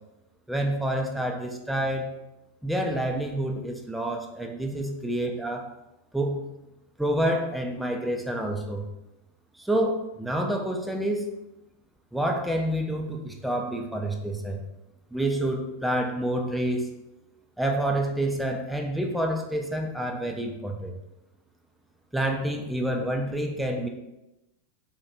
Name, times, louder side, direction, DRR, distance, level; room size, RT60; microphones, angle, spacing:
voice 1, 0.5-2.1 2.6-5.7 6.1-6.4 7.0-8.9 9.6-11.3 12.1-14.6 15.1-16.9 17.6-20.9 22.1-23.9, right 1 dB, ahead, 2 dB, 0.3 m, -28 dB
2.3 x 2.1 x 2.9 m, 0.93 s
figure-of-eight pair, 90°, 0 cm